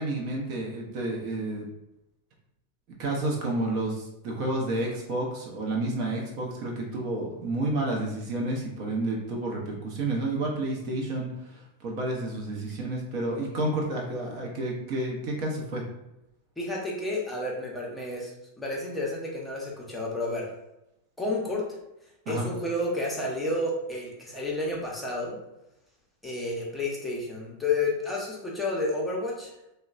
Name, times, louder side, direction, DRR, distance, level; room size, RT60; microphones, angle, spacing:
voice 1, 0.0-1.7 3.0-15.8 22.3-22.5, right 2 dB, 40° right, -1 dB, 0.7 m, -30 dB
voice 2, 16.6-20.5 21.2-21.6 22.3-25.4 26.2-29.5, left 2 dB, 5° left, -3 dB, 0.8 m, -31 dB
3.8 x 2.1 x 2.5 m, 0.88 s
figure-of-eight pair, 90°, 0 cm